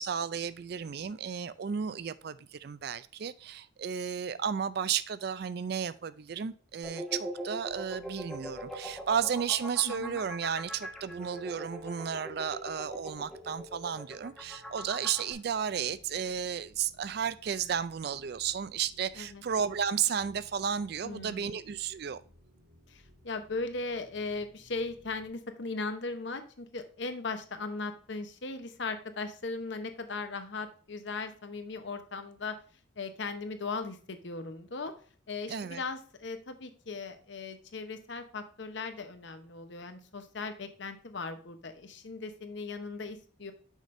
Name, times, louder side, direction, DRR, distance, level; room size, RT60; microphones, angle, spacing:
voice 1, 0.0-22.2 35.5-35.8, right 7 dB, 50° right, 0.3 m, -33 dB
sound 1, 6.8-15.3, equal, ahead, 1.1 m, -41 dB
sound 2, 7.6-25.3, left 1 dB, 90° right, 2.0 m, -61 dB
voice 2, 9.8-10.2 19.2-19.4 21.0-21.6 22.9-32.6 33.0-34.9 35.3-43.5, left 3 dB, 60° left, 0.8 m, -38 dB
6.5 x 5.1 x 3.1 m
head